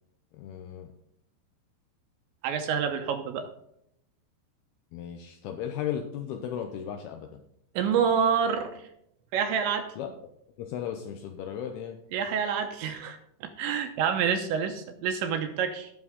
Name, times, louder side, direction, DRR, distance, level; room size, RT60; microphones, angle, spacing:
voice 1, 0.3-0.9 4.9-7.4 10.0-10.1 10.6-12.0, left 9 dB, 90° left, 4 dB, 2.2 m, -35 dB
voice 2, 2.4-3.5 7.8-8.7 9.3-9.9 12.1-15.9, right 7 dB, 75° right, 6 dB, 2.9 m, -27 dB
18.0 x 6.2 x 3.7 m, 0.74 s
omnidirectional pair, 5.6 m